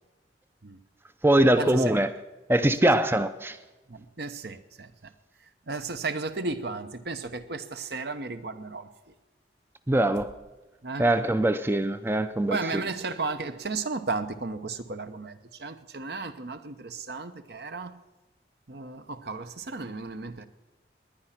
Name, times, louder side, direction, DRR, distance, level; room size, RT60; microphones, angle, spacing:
voice 1, 1.2-2.1 2.5-3.6 9.9-10.3 11.0-12.8, right 1 dB, 15° right, 0.5 m, -22 dB
voice 2, 3.9-4.9 5.7-8.9 10.8-11.0 12.5-18.0 18.7-20.5, right 3 dB, 65° right, 1.0 m, -34 dB
20.5 x 10.0 x 5.9 m
head